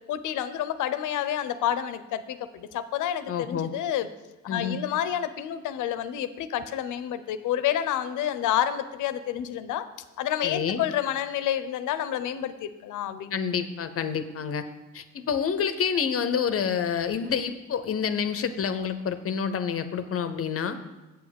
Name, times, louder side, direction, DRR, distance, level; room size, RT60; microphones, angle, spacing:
voice 1, 0.1-4.1 4.4-9.8 10.2-13.3, left 11 dB, 85° left, 12 dB, 0.7 m, -29 dB
voice 2, 3.3-3.7 4.5-4.8 10.4-10.8 13.3-14.6 14.9-20.8, left 7 dB, 50° left, 10 dB, 0.7 m, -28 dB
8.2 x 6.3 x 6.9 m, 1.1 s
cardioid pair, 90°, 30 cm